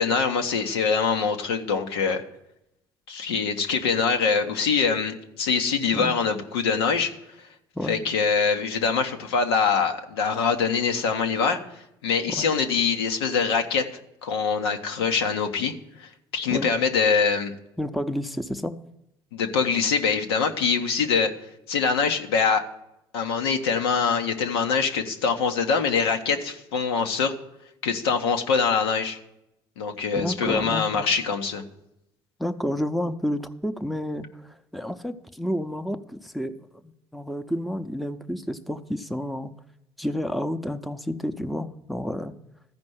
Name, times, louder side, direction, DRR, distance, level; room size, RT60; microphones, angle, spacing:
voice 1, 0.0-2.2 3.1-7.1 7.8-11.6 12.0-13.8 14.2-17.5 19.3-21.3 21.7-22.6 23.1-27.3 27.8-29.2 29.8-31.6, left 5 dB, 80° left, 4 dB, 1.0 m, -24 dB
voice 2, 17.8-18.8 30.2-31.0 32.4-36.6 36.8-39.5 40.0-42.3, equal, ahead, 8 dB, 0.7 m, -30 dB
14.0 x 5.3 x 7.8 m, 0.84 s
hypercardioid pair, 65°, 13 cm